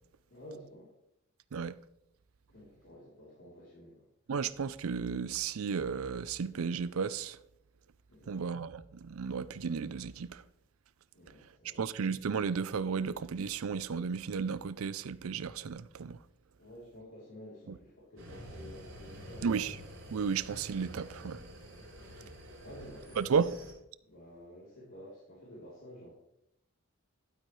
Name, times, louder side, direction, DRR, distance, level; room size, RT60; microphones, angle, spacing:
voice 1, 0.3-0.9 2.5-4.1 8.1-8.4 11.1-11.8 16.6-19.6 21.9-22.3 22.6-23.6 24.0-26.1, equal, 65° left, 3.4 m, -51 dB
voice 2, 4.3-7.4 8.3-10.4 11.8-16.2 19.4-19.8 20.1-21.4 23.2-23.5, right 6 dB, 80° right, 0.5 m, -33 dB
sound 1, 18.2-23.7, equal, 65° right, 3.9 m, -48 dB
12.0 x 8.5 x 3.2 m
head